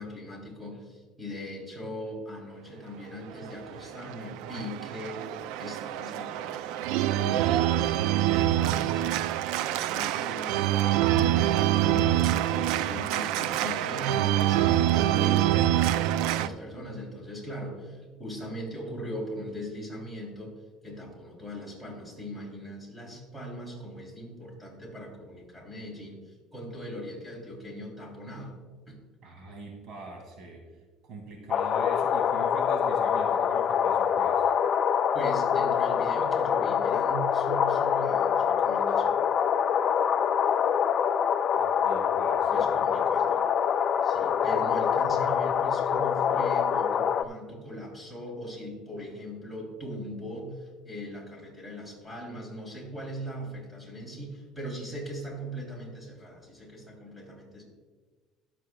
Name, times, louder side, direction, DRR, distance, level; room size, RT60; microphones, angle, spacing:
voice 1, 0.0-9.1 9.5-20.6 20.8-28.6 28.9-29.0 35.1-39.1 42.4-43.4 44.0-57.6, equal, 5° right, -1 dB, 3.1 m, -40 dB
Organ, 3.3-16.5, right 13 dB, 80° right, 0.3 m, -26 dB
voice 2, 29.2-30.6 31.0-34.5 41.5-42.7, right 3 dB, 55° right, 2 dB, 2.2 m, -43 dB
sound 1, 31.5-47.2, left 8 dB, 45° left, 0.4 m, -25 dB
21.0 x 7.7 x 2.3 m, 1.4 s
cardioid pair, 130°, 0 cm